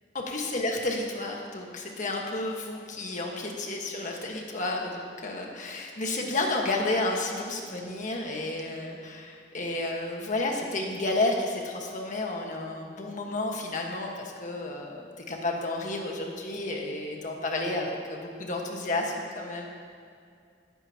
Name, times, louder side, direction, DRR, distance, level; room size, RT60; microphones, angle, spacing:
voice 1, 0.1-19.7, left 2 dB, 45° left, 0 dB, 1.4 m, -31 dB
18.0 x 10.0 x 2.9 m, 2.3 s
head